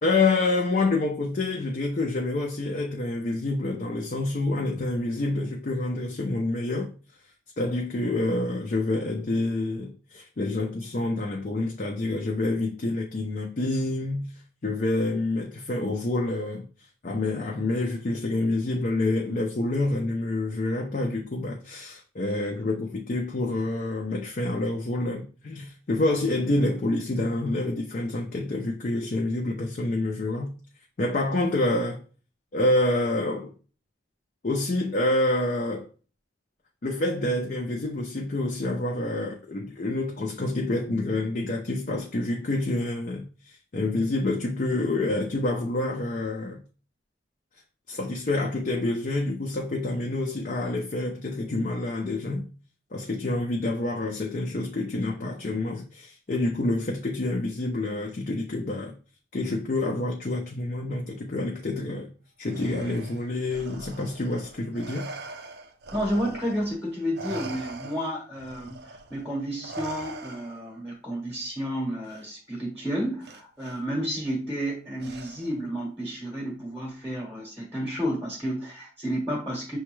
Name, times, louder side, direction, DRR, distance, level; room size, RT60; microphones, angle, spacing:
voice 1, 0.0-6.9 7.6-14.3 14.6-16.7 17.0-30.5 31.0-32.0 32.5-33.5 34.4-35.8 36.8-46.6 47.9-52.4 52.9-58.9 59.3-62.1 62.4-65.1, left 2 dB, 40° left, 0.5 m, -27 dB
Respiratory sounds, 62.4-66.8 67.1-70.8 72.0-72.2 73.2-73.8 75.0-75.6, right 2 dB, 55° right, 0.5 m, -42 dB
voice 2, 65.9-79.8, equal, 10° right, 0.9 m, -31 dB
6.1 x 2.2 x 3.1 m
head